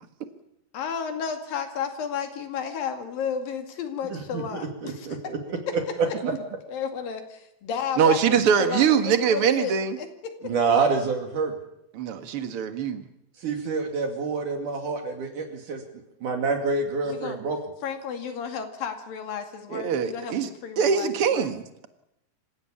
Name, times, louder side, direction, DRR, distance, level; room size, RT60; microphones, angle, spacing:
voice 1, 0.7-5.3 5.7-6.0 6.7-10.3 17.0-17.4 17.8-21.5, left 7 dB, 80° left, 6 dB, 4.0 m, -32 dB
voice 2, 4.1-5.4 10.4-11.5 13.4-15.8 16.2-17.6, right 4 dB, 65° right, 3 dB, 3.9 m, -27 dB
voice 3, 8.0-10.0 11.9-13.0 19.7-20.5 20.8-21.9, right 7 dB, 50° right, 8 dB, 2.1 m, -23 dB
26.5 x 16.0 x 8.7 m, 0.83 s
omnidirectional pair, 4.0 m